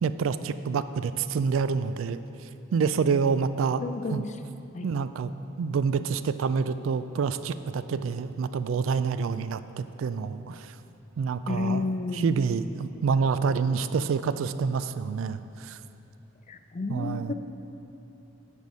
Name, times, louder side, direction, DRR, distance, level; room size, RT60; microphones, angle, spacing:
voice 1, 0.0-3.8 4.1-4.3 4.8-10.8 11.2-11.9 12.1-15.8 16.9-17.3, right 5 dB, 85° right, 12 dB, 0.3 m, -27 dB
voice 2, 3.8-4.2 4.7-4.9 11.5-12.3 16.5-17.3, left 3 dB, 35° left, 8 dB, 0.4 m, -31 dB
10.5 x 5.5 x 4.8 m, 2.8 s
head